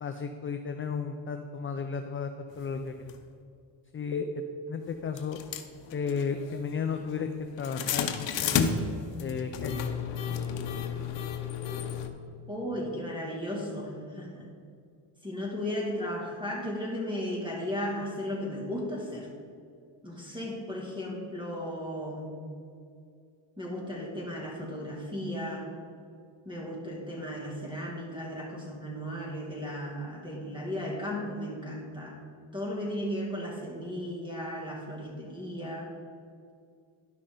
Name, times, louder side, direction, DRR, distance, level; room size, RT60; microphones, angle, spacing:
voice 1, 0.0-2.3 2.6-3.1 3.9-5.4 5.9-7.3 7.6-8.7 9.2-9.9, left 6 dB, 30° left, 7 dB, 0.4 m, -34 dB
sound 1, 3.1-3.2 4.1-4.2 5.2-12.1, left 7 dB, 70° left, 0.8 m, -32 dB
voice 2, 12.5-14.5 15.2-19.3 20.0-22.4 23.6-25.7 26.5-32.2 32.5-35.9, equal, 10° right, -2 dB, 2.2 m, -35 dB
11.5 x 5.9 x 3.8 m, 2.3 s
cardioid pair, 90°, 46 cm